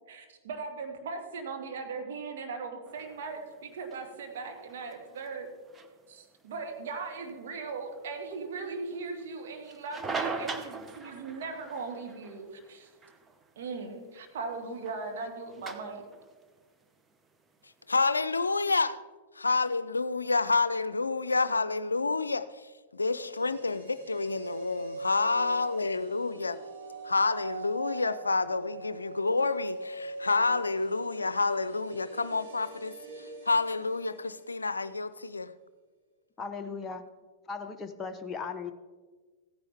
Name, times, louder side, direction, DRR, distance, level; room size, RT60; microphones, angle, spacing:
voice 1, 0.1-5.5 6.1-12.9 13.6-16.0, right 4 dB, 65° right, 1.8 m, -39 dB
sound 1, 2.9-18.0, right 4 dB, 15° right, 0.9 m, -43 dB
voice 2, 17.9-19.0 19.4-26.6 27.0-32.9 33.5-35.5, left 3 dB, 85° left, 0.5 m, -29 dB
sound 2, 23.0-35.1 35.4-35.5, right 2 dB, 85° right, 3.3 m, -42 dB
voice 3, 36.4-37.0 37.5-38.7, left 5 dB, 20° left, 0.8 m, -37 dB
15.5 x 9.8 x 3.5 m
figure-of-eight pair, 100°, 0 cm